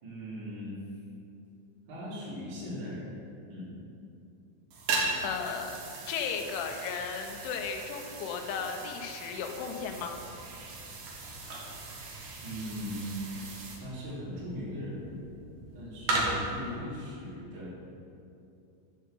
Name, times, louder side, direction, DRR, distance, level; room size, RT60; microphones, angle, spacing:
voice 1, 0.0-0.8 1.9-3.1 3.5-3.8 12.4-13.2 13.8-15.2 15.7-17.8, left 1 dB, 45° right, -11 dB, 3.7 m, -39 dB
sound 1, 4.7-13.8, right 3 dB, 80° right, 1.8 m, -39 dB
voice 2, 5.2-5.8 6.1-10.2, left 6 dB, 80° left, 3 dB, 2.4 m, -35 dB
sound 2, 9.9-16.8, right 2 dB, 65° right, 2.0 m, -38 dB
9.0 x 7.4 x 7.1 m, 2.7 s
omnidirectional pair, 5.7 m